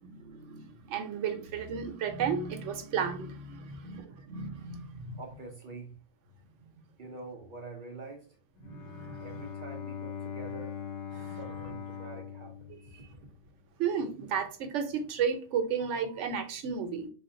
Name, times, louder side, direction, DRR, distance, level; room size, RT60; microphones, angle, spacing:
voice 1, 0.0-5.2 8.6-9.4 11.1-11.4 13.8-17.1, right 6 dB, 75° right, 0.9 m, -33 dB
voice 2, 5.1-6.0 7.0-8.4 9.2-10.8 11.4-13.1, right 3 dB, 60° right, 0.5 m, -46 dB
Bowed string instrument, 8.6-13.6, left 7 dB, 70° left, 0.8 m, -41 dB
3.4 x 2.4 x 2.5 m
omnidirectional pair, 1.3 m